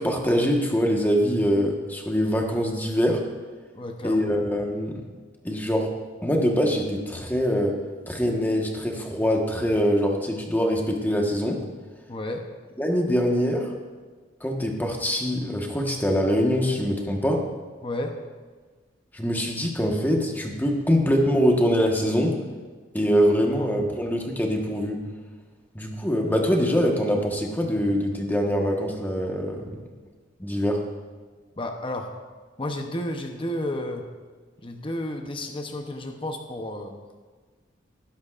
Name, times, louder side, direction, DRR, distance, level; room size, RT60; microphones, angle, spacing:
voice 1, 0.0-3.2 4.0-5.0 5.4-5.9 6.2-7.8 8.1-11.6 12.8-13.7 14.4-17.4 19.1-22.4 22.9-25.0 25.7-29.7 30.4-30.8, equal, 10° left, 1 dB, 1.4 m, -23 dB
voice 2, 3.7-4.3 12.1-12.4 17.8-18.1 23.5-23.7 31.6-32.1 32.6-34.1 34.6-36.9, left 1 dB, 25° left, 4 dB, 0.8 m, -32 dB
18.5 x 10.5 x 2.5 m, 1.4 s
head